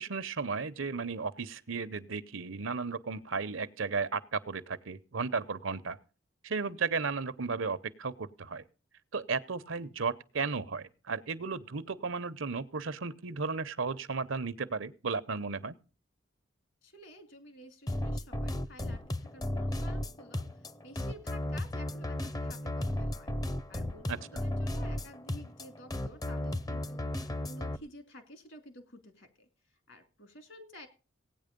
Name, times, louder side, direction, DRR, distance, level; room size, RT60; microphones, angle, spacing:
voice 1, 0.0-6.0 6.4-8.6 9.1-15.7 24.1-24.4, right 4 dB, 80° right, 15 dB, 0.9 m, -34 dB
voice 2, 16.8-23.3 23.7-29.5 29.9-30.9, left 1 dB, 65° left, 8 dB, 2.6 m, -52 dB
sound 1, 17.9-27.8, left 1 dB, 20° left, 0.6 m, -35 dB
17.0 x 9.2 x 5.2 m, 0.35 s
head